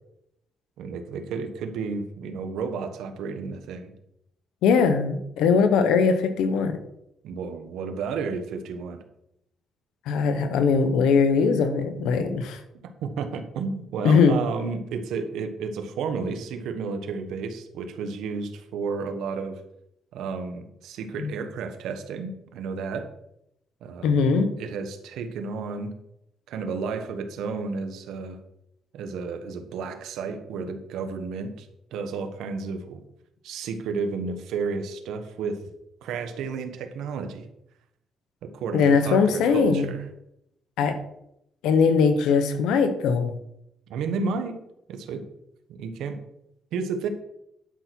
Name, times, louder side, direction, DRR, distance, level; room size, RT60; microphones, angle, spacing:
voice 1, 0.8-3.9 7.2-9.0 13.0-19.6 20.1-23.1 23.8-24.3 24.6-25.9 26.5-28.4 28.9-31.7 31.9-33.0 33.4-35.6 36.0-37.5 38.4-40.0 43.9-44.6 44.9-45.2 45.8-46.2 46.7-47.1, right 5 dB, 85° right, 7 dB, 1.2 m, -32 dB
voice 2, 4.6-6.8 10.1-12.6 14.0-14.4 21.2-21.3 24.0-24.5 38.7-39.9 40.8-41.0 41.6-43.4, left 5 dB, 90° left, 9 dB, 1.1 m, -21 dB
11.0 x 6.0 x 4.6 m, 0.79 s
cardioid pair, 90°, 0 cm